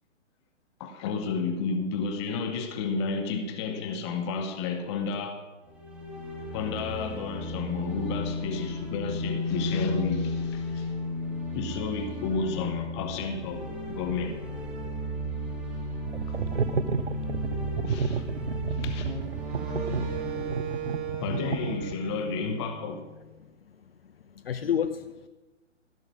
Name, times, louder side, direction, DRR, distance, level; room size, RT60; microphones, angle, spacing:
voice 1, 0.8-5.5 6.5-10.9 11.5-14.5 16.3-16.4 17.8-18.3 18.8-19.2 21.2-23.1, left 5 dB, 25° left, 1.1 m, -32 dB
sound 1, 5.7-21.8, left 1 dB, 5° right, 0.5 m, -34 dB
sound 2, 16.1-22.2, right 5 dB, 70° right, 0.8 m, -31 dB
Wind instrument woodwind instrument, 19.0-23.2, right 5 dB, 45° right, 2.0 m, -37 dB
voice 2, 23.4-25.3, left 8 dB, 50° left, 0.7 m, -32 dB
15.5 x 6.3 x 6.2 m
figure-of-eight pair, 130°, 37 cm